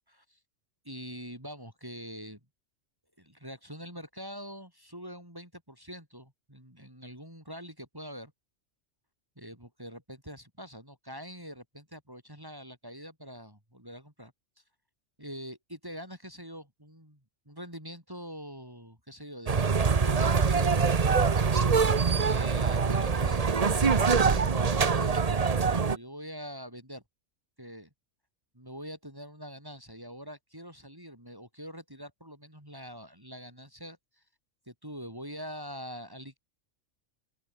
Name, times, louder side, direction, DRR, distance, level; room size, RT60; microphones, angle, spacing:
voice 1, 0.1-0.4 0.8-2.4 3.2-8.3 9.4-14.3 15.2-17.2 17.4-21.0 22.2-27.0 27.6-27.9 28.5-34.2 34.7-36.4, equal, 15° right, 6.8 m, -44 dB
sound 1, 19.5-26.0, right 5 dB, 35° right, 0.9 m, -24 dB
open air
omnidirectional pair, 1.3 m